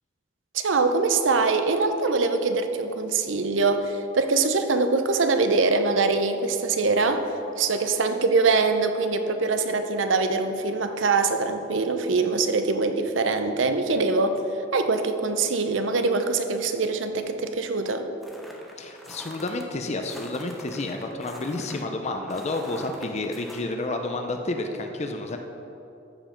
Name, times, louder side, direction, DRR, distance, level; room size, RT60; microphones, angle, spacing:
voice 1, 0.5-7.2 7.6-14.4 14.7-18.1, right 3 dB, 75° right, 8 dB, 0.7 m, -23 dB
sound 1, 18.2-19.6 20.1-23.6, equal, ahead, 0.9 m, -44 dB
voice 2, 18.8-25.4, left 2 dB, 35° left, 5 dB, 0.6 m, -30 dB
14.0 x 5.3 x 5.1 m, 2.9 s
head